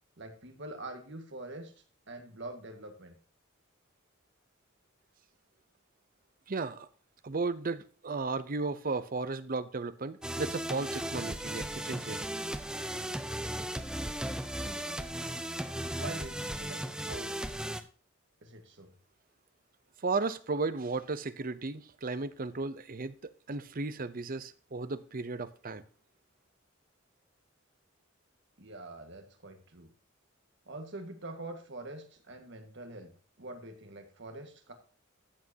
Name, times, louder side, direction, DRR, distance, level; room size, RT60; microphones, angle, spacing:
voice 1, 0.2-1.7 2.1-3.2 14.9-15.4 16.0-17.3 18.4-18.9 28.6-29.9 30.7-33.1 33.4-34.7, right 2 dB, 60° right, 1.7 m, -45 dB
voice 2, 6.5-6.9 7.2-12.2 20.0-23.1 23.5-25.9, right 3 dB, 45° right, 0.6 m, -34 dB
sound 1, 10.2-17.8, right 1 dB, 5° right, 0.6 m, -36 dB
14.0 x 7.6 x 2.8 m
head